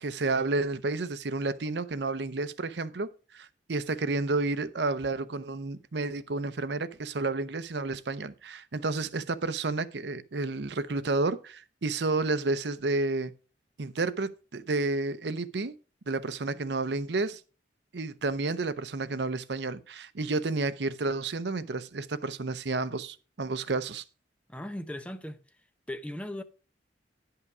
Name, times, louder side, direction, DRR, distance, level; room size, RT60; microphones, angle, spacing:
voice 1, 0.0-3.1 3.3-13.3 13.8-15.7 16.1-17.4 17.9-24.0, right 3 dB, 65° right, 0.7 m, -31 dB
voice 2, 24.5-25.4 25.9-26.4, left 1 dB, 5° left, 0.6 m, -38 dB
10.5 x 5.7 x 4.8 m
head